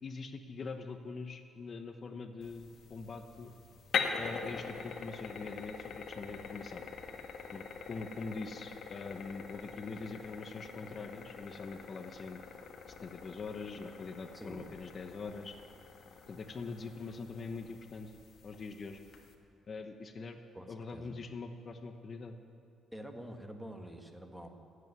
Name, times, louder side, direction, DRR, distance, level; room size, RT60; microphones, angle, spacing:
voice 1, 0.0-3.5 4.2-6.8 7.5-12.4 13.0-15.5 16.3-18.1 18.4-19.0 19.7-20.4 20.7-22.3, left 4 dB, 45° left, 6 dB, 1.0 m, -43 dB
sound 1, 2.4-19.3, left 6 dB, 65° left, 1.6 m, -43 dB
voice 2, 14.3-14.7 20.5-21.1 22.9-24.5, right 1 dB, 5° right, 5 dB, 1.5 m, -47 dB
16.0 x 8.4 x 9.6 m, 2.5 s
cardioid pair, 90°, 0 cm